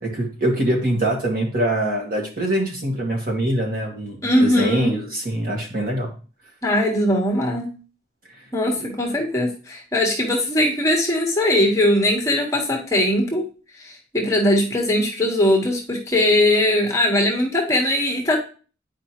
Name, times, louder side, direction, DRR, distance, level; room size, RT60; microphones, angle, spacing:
voice 1, 0.0-6.1, right 1 dB, 50° right, 0 dB, 1.9 m, -23 dB
voice 2, 4.2-5.0 6.6-7.7 8.5-13.5 13.8-18.4, left 1 dB, 15° left, -1 dB, 1.3 m, -20 dB
9.4 x 4.9 x 3.0 m, 0.37 s
head